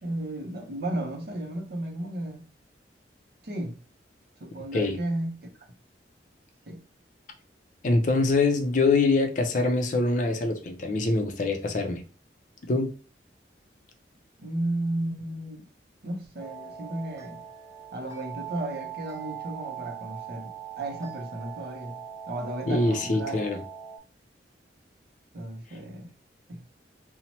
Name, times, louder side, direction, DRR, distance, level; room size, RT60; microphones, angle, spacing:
voice 1, 0.0-2.5 3.4-3.8 4.4-5.5 6.7-6.8 14.4-15.7 16.0-17.4 17.9-22.0 22.3-23.4 25.3-26.1 26.5-26.6, right 1 dB, 60° right, 0.6 m, -34 dB
voice 2, 7.8-12.0 12.7-12.9 22.7-23.6, left 3 dB, 45° left, 0.4 m, -24 dB
sound 1, 16.4-24.0, right 9 dB, 15° right, 0.4 m, -41 dB
2.8 x 2.0 x 2.9 m
head